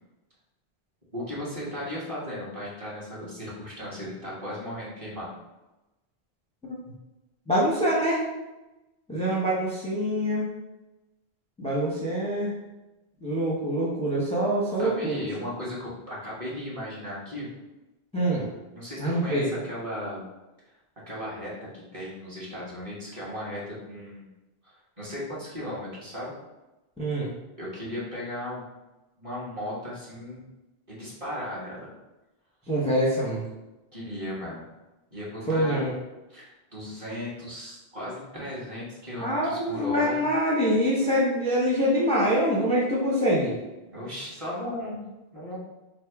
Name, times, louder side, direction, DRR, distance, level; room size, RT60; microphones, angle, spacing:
voice 1, 1.1-5.3 14.8-17.5 18.7-20.2 21.1-24.3 24.6-26.3 27.6-28.6 29.2-30.5 30.9-31.9 33.9-34.7 35.1-35.8 36.3-40.2 43.9-45.0 45.3-45.6, left 1 dB, 30° right, -7 dB, 1.3 m, -36 dB
voice 2, 7.5-8.2 9.1-10.5 11.6-12.5 13.2-15.2 18.1-18.5 19.0-19.6 27.0-27.3 32.7-33.5 35.5-35.9 39.2-43.6, equal, 5° left, -5 dB, 0.6 m, -25 dB
3.4 x 2.7 x 4.6 m, 1.0 s
omnidirectional pair, 1.1 m